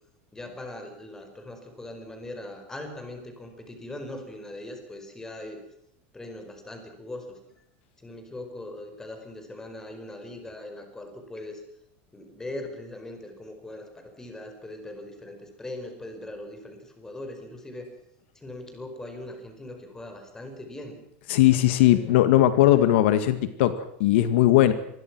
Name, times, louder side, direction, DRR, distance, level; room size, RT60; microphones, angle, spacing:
voice 1, 0.3-5.6 6.1-7.7 8.0-11.6 12.1-17.9 18.3-21.0 21.9-22.2, left 1 dB, 10° left, 5 dB, 4.9 m, -40 dB
voice 2, 21.3-24.7, left 13 dB, 75° left, 11 dB, 2.0 m, -19 dB
26.0 x 21.5 x 6.2 m, 0.73 s
supercardioid pair, 165°, 6 cm